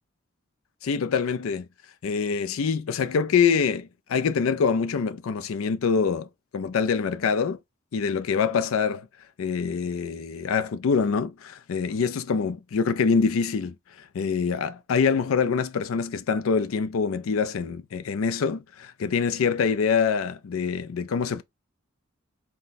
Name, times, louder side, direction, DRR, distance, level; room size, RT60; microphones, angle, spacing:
voice 1, 0.8-1.7 2.0-6.3 6.5-7.6 7.9-9.1 9.4-21.4, left 5 dB, 90° left, 0.4 m, -25 dB
4.2 x 2.2 x 3.9 m
head